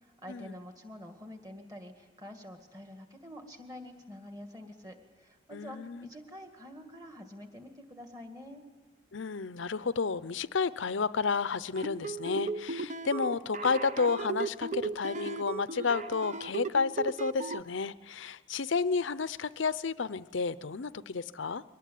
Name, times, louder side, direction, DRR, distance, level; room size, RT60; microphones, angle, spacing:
voice 1, 0.0-8.6, left 1 dB, 20° right, 5 dB, 2.0 m, -47 dB
voice 2, 5.5-6.1 9.1-21.6, left 5 dB, 70° left, 16 dB, 0.6 m, -31 dB
sound 1, 11.7-17.6, right 4 dB, 35° right, 0.7 m, -36 dB
23.0 x 18.5 x 9.4 m, 1.4 s
head